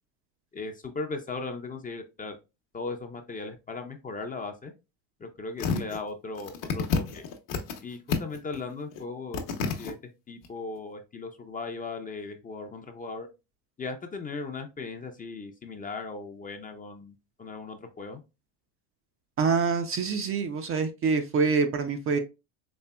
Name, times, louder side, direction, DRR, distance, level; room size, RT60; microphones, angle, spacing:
voice 1, 0.5-2.4 2.7-4.7 5.2-7.2 7.8-9.4 9.8-10.0 10.3-13.3 13.8-18.2, left 3 dB, 20° left, 5 dB, 0.6 m, -37 dB
sound 1, 5.6-6.0 6.4-7.8 8.1-8.6 8.9-9.0 9.3-9.9 10.4-10.5, left 5 dB, 50° left, 0.9 m, -29 dB
voice 2, 19.4-22.2, right 5 dB, 30° right, 7 dB, 0.5 m, -26 dB
4.3 x 3.2 x 2.2 m, 0.27 s
supercardioid pair, 95°, 44 cm